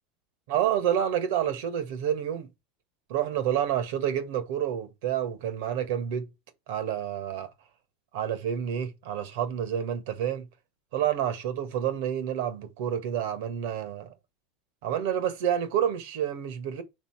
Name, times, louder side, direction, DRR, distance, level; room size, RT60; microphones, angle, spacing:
voice 1, 0.5-2.5 3.1-6.3 6.7-7.5 8.1-10.5 10.9-14.1 14.8-16.8, right 9 dB, 75° right, 1.6 m, -29 dB
5.4 x 4.2 x 6.0 m
supercardioid pair, 140°, 0 cm